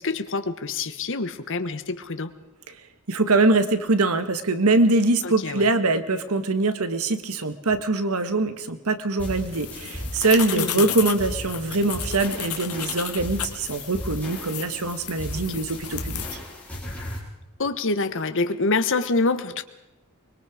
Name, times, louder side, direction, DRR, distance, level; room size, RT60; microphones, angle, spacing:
voice 1, 0.0-2.3 5.2-5.7 10.6-10.9 15.3-15.6 17.6-19.6, left 3 dB, 60° left, 10 dB, 1.3 m, -26 dB
voice 2, 3.1-16.2, right 3 dB, 75° right, 10 dB, 1.5 m, -23 dB
sound 1, 9.2-17.2, equal, 5° left, 5.4 m, -37 dB
sound 2, 9.5-16.4, left 10 dB, 80° left, 1.8 m, -33 dB
24.0 x 22.0 x 5.1 m, 0.95 s
head